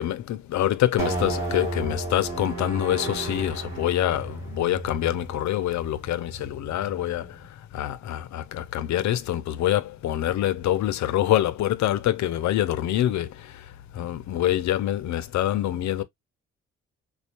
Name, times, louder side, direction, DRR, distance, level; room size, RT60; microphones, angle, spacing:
voice 1, 0.0-7.3 7.7-13.3 13.9-16.0, left 12 dB, 70° left, 0.6 m, -25 dB
sound 1, 1.0-7.5, right 2 dB, 10° right, 2.3 m, -33 dB
4.3 x 2.3 x 2.8 m
cardioid pair, 90°, 30 cm